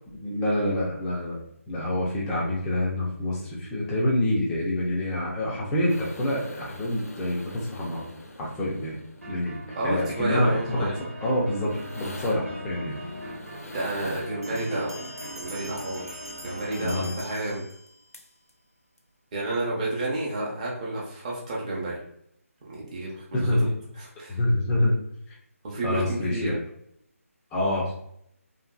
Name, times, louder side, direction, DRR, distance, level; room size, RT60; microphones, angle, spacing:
voice 1, 0.2-1.4 1.7-8.1 8.4-9.0 9.3-9.6 9.8-13.0 16.8-17.1 23.3-23.7 24.3-24.9 25.3-25.4 25.8-26.6 27.5-27.9, left 1 dB, 5° left, -5 dB, 0.4 m, -26 dB
sound 1, 5.9-14.9 17.9-18.0 18.1-18.5 19.0-19.1, left 1 dB, 85° left, 0.6 m, -45 dB
sound 2, 9.2-17.2, equal, 60° right, 0.9 m, -40 dB
voice 2, 9.8-10.9 13.7-15.0 15.3-17.6 19.3-22.0 22.6-23.4 24.0-24.4 25.6-26.5, right 2 dB, 25° right, -5 dB, 0.7 m, -30 dB
sound 3, 14.4-18.2, left 1 dB, 90° right, 0.7 m, -44 dB
2.8 x 2.6 x 2.2 m, 0.72 s
figure-of-eight pair, 160°, 8 cm